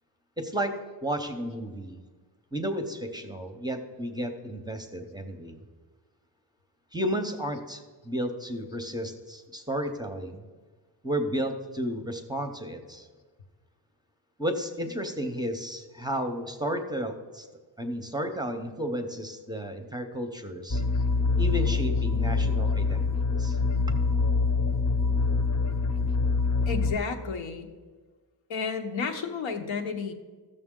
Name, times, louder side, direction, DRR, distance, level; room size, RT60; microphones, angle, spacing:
voice 1, 0.4-2.0 2.5-5.6 6.9-10.4 11.0-13.1 14.4-17.5 17.8-20.8 21.4-23.6, equal, 10° right, 5 dB, 0.6 m, -33 dB
sound 1, 20.7-27.0, left 4 dB, 35° left, 0.8 m, -25 dB
voice 2, 26.7-27.7 28.5-30.1, left 5 dB, 85° left, 5 dB, 1.1 m, -32 dB
14.0 x 6.7 x 3.7 m, 1.4 s
wide cardioid pair, 150°, 45 cm